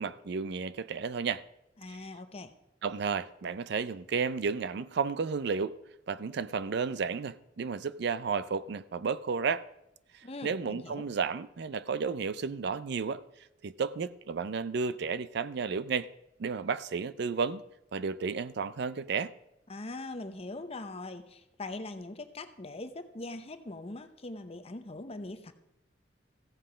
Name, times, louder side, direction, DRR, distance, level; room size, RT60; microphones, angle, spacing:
voice 1, 0.0-1.4 2.8-5.8 6.1-9.7 10.4-13.2 13.6-16.1 16.4-17.6 17.9-19.3, right 5 dB, 60° right, 0.4 m, -32 dB
voice 2, 1.8-2.6 10.2-11.1 19.7-25.5, left 2 dB, 35° left, 0.8 m, -41 dB
15.0 x 7.6 x 5.0 m
head